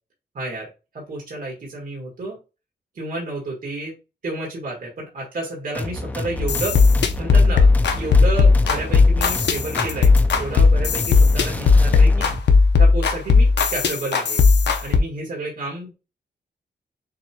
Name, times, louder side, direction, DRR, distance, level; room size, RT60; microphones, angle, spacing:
voice 1, 0.3-0.7 0.9-2.4 2.9-4.0 4.2-6.8 7.2-7.7 7.9-10.1 10.4-12.3 12.8-14.4 14.8-15.9, right 2 dB, 50° right, -2 dB, 1.5 m, -30 dB
sound 1, 5.7-12.4, left 1 dB, 10° left, 0.4 m, -30 dB
sound 2, 6.4-15.0, left 4 dB, 80° left, 0.7 m, -16 dB
6.5 x 3.0 x 2.3 m, 0.29 s
wide cardioid pair, 180°, 18 cm